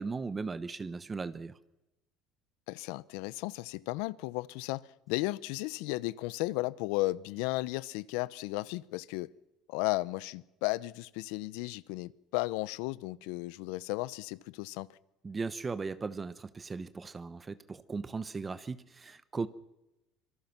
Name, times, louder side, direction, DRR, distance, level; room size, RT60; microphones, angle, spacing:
voice 1, 0.0-1.5 15.2-19.5, right 4 dB, 20° right, 1.0 m, -37 dB
voice 2, 2.7-9.3 9.7-15.0, left 20 dB, 80° left, 0.8 m, -34 dB
25.5 x 23.0 x 6.0 m
cardioid pair, 145°, 0 cm